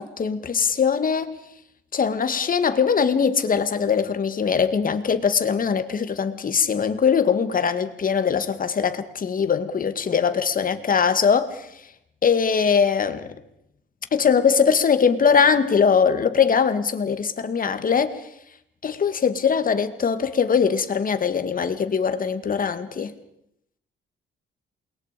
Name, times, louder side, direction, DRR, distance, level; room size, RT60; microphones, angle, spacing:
voice 1, 0.0-1.3 1.9-11.7 12.2-13.3 14.1-18.2 18.8-23.1, left 6 dB, 45° left, 2.1 m, -21 dB
28.5 x 21.5 x 5.3 m
cardioid pair, 90°, 20 cm